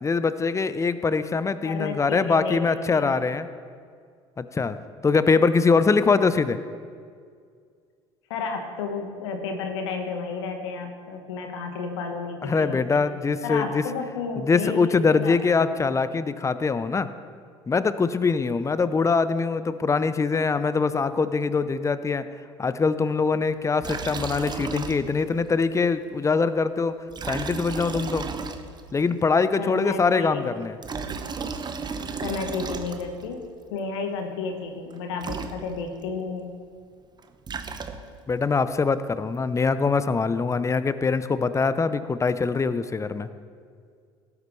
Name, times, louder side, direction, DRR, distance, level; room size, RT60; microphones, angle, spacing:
voice 1, 0.0-3.5 4.4-4.8 5.0-6.6 12.4-13.8 14.4-17.1 17.7-22.2 22.6-26.9 27.3-28.3 28.9-30.8 38.3-43.3, left 4 dB, 20° left, 13 dB, 0.7 m, -23 dB
voice 2, 1.6-3.1 8.3-13.0 13.4-15.6 29.6-30.6 32.2-36.5, left 4 dB, 75° left, 4 dB, 1.3 m, -32 dB
Liquid, 23.8-25.3 25.6-25.7 27.1-29.0 30.6-33.3 34.9-35.0 35.2-36.0 37.2-38.3, right 5 dB, 30° right, 1.0 m, -34 dB
18.0 x 9.8 x 3.2 m, 2.1 s
hypercardioid pair, 65°, 15 cm